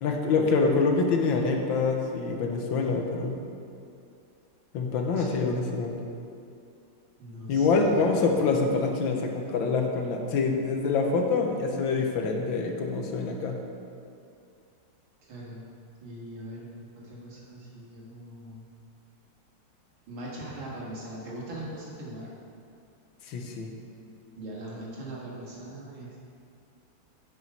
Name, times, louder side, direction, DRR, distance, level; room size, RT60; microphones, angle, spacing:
voice 1, 0.0-3.4 4.7-6.0 7.5-13.6 23.3-23.7, left 4 dB, 70° left, 3 dB, 1.6 m, -26 dB
voice 2, 7.2-8.0 15.2-15.6 16.0-16.7 16.9-18.7 20.1-22.3 24.4-26.2, right 1 dB, 75° right, -5 dB, 2.7 m, -41 dB
9.8 x 5.9 x 5.4 m, 2.5 s
omnidirectional pair, 2.3 m